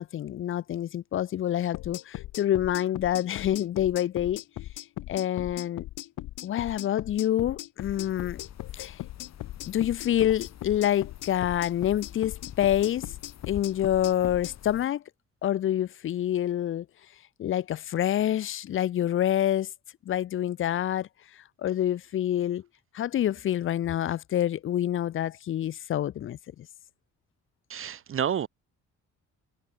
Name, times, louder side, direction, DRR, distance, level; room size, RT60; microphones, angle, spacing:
voice 1, 0.0-4.4 5.1-5.8 6.4-8.4 8.7-9.0 9.7-13.1 13.5-15.0 15.4-16.9 17.4-19.7 20.1-21.1 21.6-22.6 22.9-26.7, left 11 dB, 45° left, 0.4 m, -27 dB
sound 1, 1.7-14.5, left 15 dB, 85° left, 2.1 m, -39 dB
sound 2, 7.8-14.9, left 10 dB, 60° left, 2.0 m, -47 dB
voice 2, 27.7-28.5, right 9 dB, 45° right, 0.8 m, -29 dB
cardioid pair, 90°, 30 cm